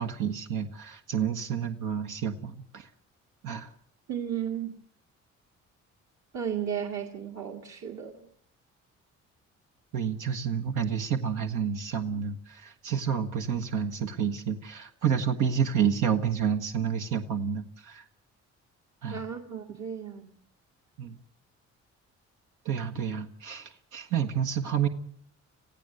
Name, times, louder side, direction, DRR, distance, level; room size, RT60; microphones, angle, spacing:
voice 1, 0.0-2.9 3.4-3.7 9.9-18.0 19.0-19.2 21.0-21.1 22.6-24.9, right 7 dB, 90° right, 5 dB, 1.4 m, -29 dB
voice 2, 4.1-4.8 6.3-8.3 19.1-20.3, right 8 dB, 65° right, 1 dB, 2.1 m, -34 dB
26.5 x 15.5 x 7.8 m, 0.65 s
cardioid pair, 90°, 30 cm